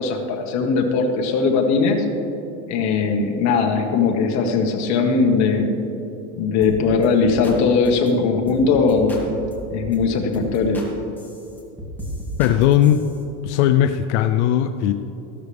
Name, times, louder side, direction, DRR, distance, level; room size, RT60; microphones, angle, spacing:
voice 1, 0.0-2.0 2.7-5.7 6.4-9.2 9.7-10.8, left 4 dB, 50° left, 2 dB, 1.7 m, -19 dB
sound 1, 6.6-6.8 7.0-7.6 7.9-8.1 8.5-8.6 8.9-10.0 10.3-10.9 11.2-13.2, equal, 5° left, 2.3 m, -35 dB
voice 2, 12.4-13.0 13.4-14.9, left 11 dB, 80° left, 9 dB, 0.6 m, -18 dB
14.5 x 12.5 x 3.5 m, 2.9 s
supercardioid pair, 130°, 35 cm